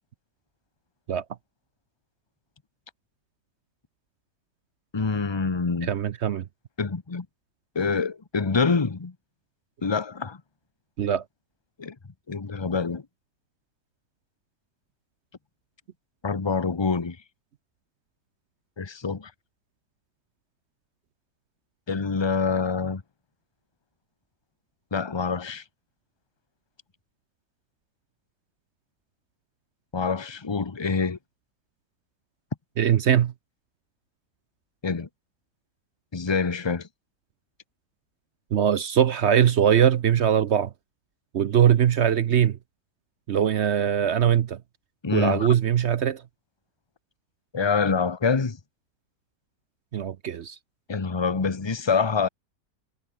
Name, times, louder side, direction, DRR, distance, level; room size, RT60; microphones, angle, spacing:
voice 1, 4.9-5.9 6.8-7.3 7.7-9.1 9.8-10.4 11.8-11.9 12.3-13.0 16.2-17.2 18.8-19.3 21.9-23.0 24.9-25.6 29.9-31.2 34.8-35.1 36.1-36.9 45.0-45.5 47.5-48.6 50.9-52.3, left 5 dB, 20° left, 0.7 m, -26 dB
voice 2, 5.8-6.5 11.0-11.2 32.8-33.3 38.5-40.7 41.3-42.6 43.3-44.6 45.1-46.2 49.9-50.6, right 9 dB, 60° right, 0.7 m, -21 dB
omnidirectional pair, 1.8 m